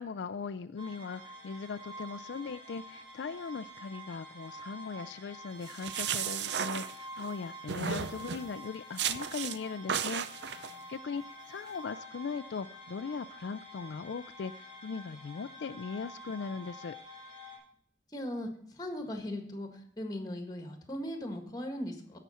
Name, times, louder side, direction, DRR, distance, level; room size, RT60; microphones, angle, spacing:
voice 1, 0.0-17.0, left 5 dB, 75° left, 11 dB, 0.4 m, -39 dB
sound 1, 0.8-17.6, equal, 30° right, 5.1 m, -48 dB
sound 2, 5.6-7.3 7.7-8.5 9.0-9.6 9.9-10.7, right 8 dB, 70° right, 0.5 m, -34 dB
voice 2, 18.1-22.2, left 1 dB, 20° left, 6 dB, 1.6 m, -39 dB
16.0 x 5.9 x 4.2 m, 0.63 s
head